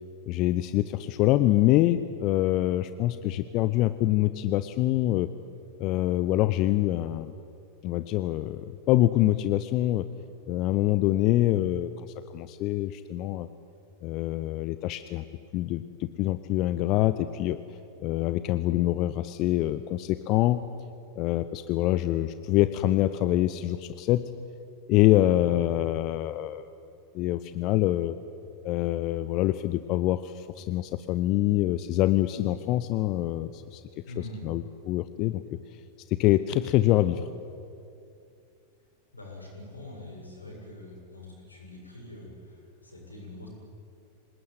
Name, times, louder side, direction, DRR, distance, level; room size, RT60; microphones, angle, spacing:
voice 1, 0.3-5.3 5.8-7.3 7.8-10.1 10.5-11.9 12.3-13.5 14.0-15.3 15.5-17.6 18.0-20.6 21.2-24.3 24.9-26.7 27.1-28.1 28.6-33.8 34.2-35.6 36.1-37.2, left 15 dB, 40° left, 12 dB, 0.7 m, -25 dB
voice 2, 25.1-25.6 34.1-34.5 39.1-43.5, left 1 dB, 80° left, -1 dB, 7.4 m, -44 dB
26.5 x 19.0 x 9.4 m, 2.6 s
figure-of-eight pair, 90°, 0 cm